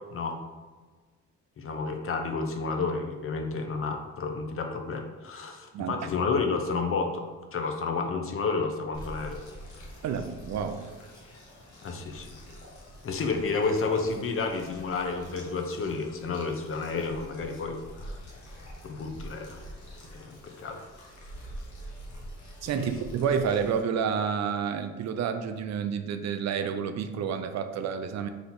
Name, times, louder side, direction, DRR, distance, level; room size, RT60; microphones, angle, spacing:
voice 1, 1.6-7.2 7.5-9.4 11.8-12.4 13.0-18.2 18.8-19.6 20.1-20.8 22.8-22.9, left 4 dB, 45° left, 4 dB, 0.7 m, -31 dB
sound 1, 8.9-23.8, equal, 70° left, 1.1 m, -46 dB
voice 2, 10.0-10.9 22.6-28.3, right 7 dB, 60° right, 8 dB, 0.5 m, -29 dB
3.9 x 2.8 x 4.3 m, 1.3 s
cardioid pair, 90°, 30 cm